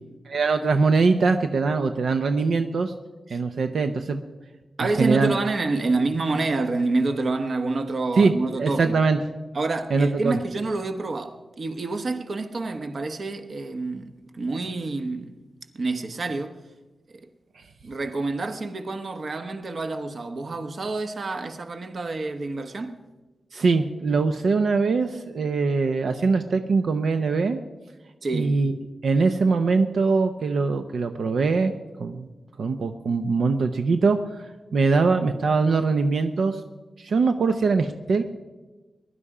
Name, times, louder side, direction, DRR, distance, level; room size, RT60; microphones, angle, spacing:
voice 1, 0.3-2.9 3.3-4.2 4.8-5.4 8.2-8.3 8.6-9.2 9.9-10.4 23.5-27.6 28.3-28.7 29.0-31.7 32.0-32.3 32.6-34.4 34.7-36.6 37.0-38.2, right 4 dB, 75° right, 0.7 m, -22 dB
voice 2, 4.8-8.9 9.5-15.4 15.7-16.6 17.8-23.0 28.2-28.6, right 3 dB, 50° right, 1.1 m, -28 dB
21.0 x 11.5 x 4.9 m
wide cardioid pair, 145°, 0 cm